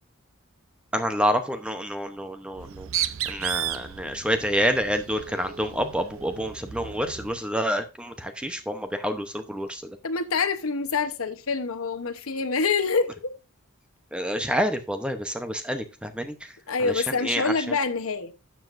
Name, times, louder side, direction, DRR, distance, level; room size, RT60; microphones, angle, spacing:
voice 1, 0.9-2.9 3.3-9.8 14.1-16.3 16.8-17.5, equal, 5° right, 0.8 m, -28 dB
Bird, 2.5-7.4, right 11 dB, 70° right, 0.5 m, -34 dB
voice 2, 10.0-13.3 16.7-18.3, left 4 dB, 75° left, 1.0 m, -26 dB
12.5 x 7.1 x 2.6 m
head